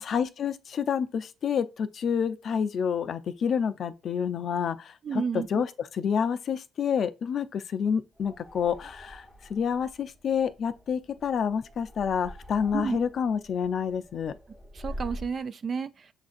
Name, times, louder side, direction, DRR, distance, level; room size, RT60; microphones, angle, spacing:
voice 1, 0.0-14.4, left 7 dB, 60° left, 0.4 m, -28 dB
voice 2, 5.0-5.6 12.7-13.0 14.7-16.1, right 6 dB, 45° right, 0.4 m, -31 dB
sound 1, 8.1-15.4, equal, ahead, 1.0 m, -45 dB
7.1 x 2.4 x 2.5 m
cardioid pair, 90°, 0 cm